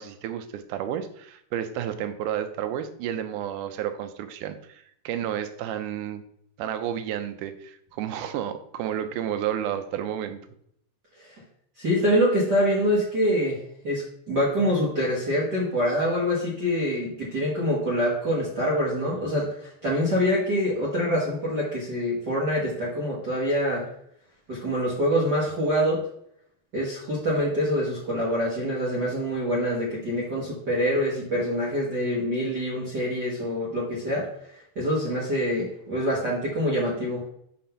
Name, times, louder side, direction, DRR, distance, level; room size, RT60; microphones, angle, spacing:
voice 1, 0.0-6.2 6.6-10.4, right 10 dB, 85° right, 9 dB, 2.1 m, -31 dB
voice 2, 11.8-13.6 13.8-23.8 24.5-26.0 26.7-34.3 34.7-37.2, equal, 45° right, -6 dB, 1.5 m, -25 dB
5.8 x 3.8 x 5.6 m, 0.70 s
omnidirectional pair, 3.6 m